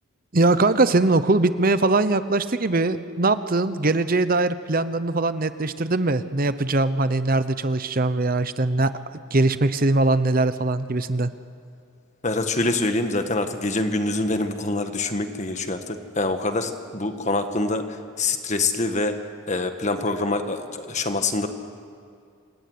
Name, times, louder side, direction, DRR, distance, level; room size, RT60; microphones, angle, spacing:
voice 1, 0.3-8.9 9.3-11.3, right 2 dB, 40° right, 12 dB, 0.8 m, -21 dB
voice 2, 12.2-21.5, left 2 dB, 35° left, 7 dB, 1.6 m, -25 dB
26.5 x 21.5 x 9.6 m, 2.4 s
head